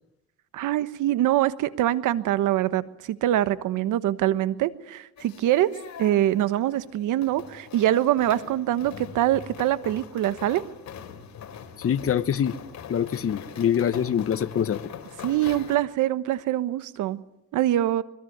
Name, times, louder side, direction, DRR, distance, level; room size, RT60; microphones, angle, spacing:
voice 1, 0.5-5.7 6.0-10.6 15.2-17.2 17.5-18.0, right 13 dB, 85° right, 14 dB, 1.3 m, -24 dB
sound 1, 5.2-15.8, left 8 dB, 65° left, 3.8 m, -42 dB
voice 2, 11.8-12.5 12.9-14.8, left 8 dB, 50° left, 12 dB, 1.2 m, -24 dB
24.5 x 21.5 x 9.4 m, 0.84 s
cardioid pair, 90°, 30 cm